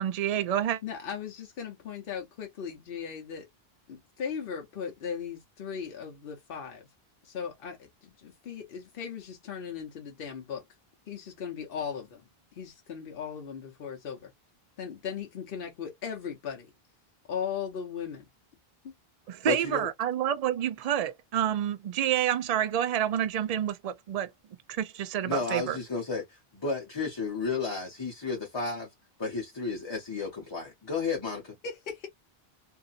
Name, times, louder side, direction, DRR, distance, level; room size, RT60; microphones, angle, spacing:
voice 1, 0.0-0.8 19.3-24.3 24.7-25.8, right 10 dB, 55° right, 0.4 m, -28 dB
voice 2, 0.8-3.5 3.9-6.9 7.2-10.6 11.1-12.2 12.5-14.3 14.8-16.7 17.3-18.2 18.8-18.9 31.6-32.1, left 7 dB, 65° left, 0.8 m, -38 dB
voice 3, 19.4-19.9 25.3-28.9 29.2-31.6, left 4 dB, 30° left, 0.7 m, -32 dB
2.7 x 2.5 x 2.3 m
omnidirectional pair, 1.0 m